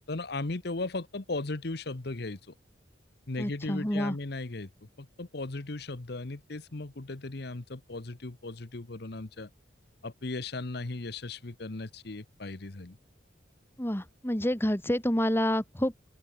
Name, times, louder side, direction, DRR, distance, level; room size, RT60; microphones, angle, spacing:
voice 1, 0.0-2.5 3.3-9.5 10.0-13.0, left 2 dB, 60° left, 1.1 m, -37 dB
voice 2, 3.4-4.2 13.8-15.9, left 1 dB, 15° left, 1.8 m, -28 dB
open air
head